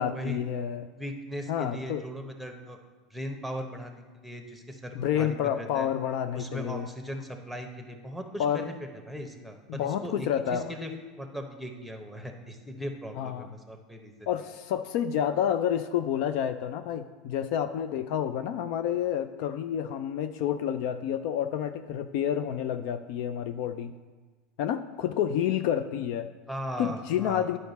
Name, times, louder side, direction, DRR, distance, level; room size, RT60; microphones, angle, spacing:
voice 1, 0.0-0.9 1.5-2.0 4.9-6.9 8.4-8.7 9.7-10.7 13.1-13.5 14.3-23.9 24.6-26.3 26.8-27.6, left 9 dB, 65° left, 10 dB, 0.4 m, -29 dB
voice 2, 1.0-2.8 3.1-5.9 6.3-8.7 9.1-10.9 11.2-14.3 26.5-27.6, equal, ahead, 4 dB, 1.0 m, -38 dB
10.5 x 4.9 x 4.1 m, 1.4 s
hypercardioid pair, 90°, 3 cm